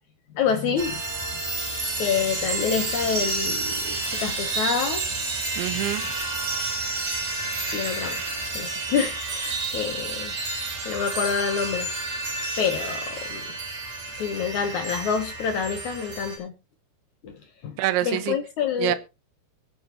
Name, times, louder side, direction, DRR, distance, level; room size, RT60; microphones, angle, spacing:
voice 1, 0.3-1.0 1.3-1.4 2.0-5.1 7.7-8.2 8.5-10.3 10.8-11.9 12.6-13.6 14.1-16.5 17.2-18.9, left 7 dB, 70° left, 1.8 m, -27 dB
sound 1, 0.8-16.4, right 3 dB, 45° right, 5.8 m, -30 dB
voice 2, 5.6-6.1 17.8-18.4 18.8-19.0, right 14 dB, 90° right, 3.3 m, -26 dB
23.0 x 7.7 x 2.9 m
omnidirectional pair, 5.1 m